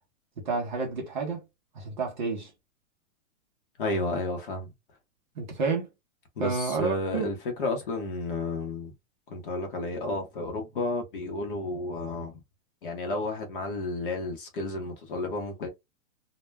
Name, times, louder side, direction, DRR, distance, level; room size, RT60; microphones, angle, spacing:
voice 1, 0.4-1.4 1.7-2.5 5.4-5.9 6.4-7.3, right 4 dB, 35° right, 0.5 m, -30 dB
voice 2, 3.8-4.7 6.4-8.9 9.3-12.4 12.8-15.7, left 2 dB, 40° left, 0.7 m, -32 dB
2.1 x 2.1 x 3.2 m
hypercardioid pair, 165°, 42 cm